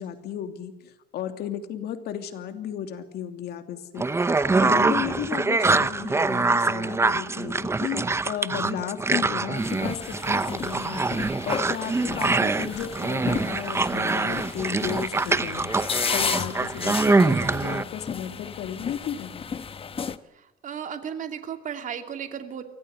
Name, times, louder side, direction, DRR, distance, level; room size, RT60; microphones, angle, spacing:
voice 1, 0.0-11.1 11.4-15.8 16.1-19.5, left 9 dB, 70° left, 7 dB, 2.8 m, -34 dB
sound 1, 4.0-17.8, right 3 dB, 15° right, 0.8 m, -24 dB
sound 2, 9.6-20.2, left 6 dB, 35° left, 1.1 m, -33 dB
voice 2, 20.3-22.6, right 8 dB, 50° right, 7 dB, 2.6 m, -35 dB
24.0 x 17.0 x 8.1 m, 1.0 s
cardioid pair, 110°, 17 cm